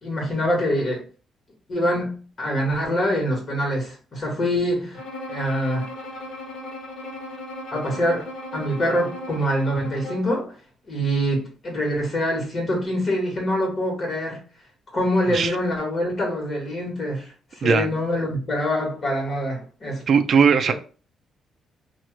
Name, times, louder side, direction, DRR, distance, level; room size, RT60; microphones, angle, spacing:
voice 1, 0.0-1.0 1.7-5.0 5.3-5.9 7.7-10.5 10.9-14.4 14.9-20.0, equal, 45° left, 1.4 m, -25 dB
Bowed string instrument, 4.9-10.4, left 1 dB, 75° left, 0.6 m, -36 dB
voice 2, 20.1-20.7, right 6 dB, 55° right, 0.3 m, -18 dB
2.9 x 2.3 x 3.1 m
cardioid pair, 90°, 0 cm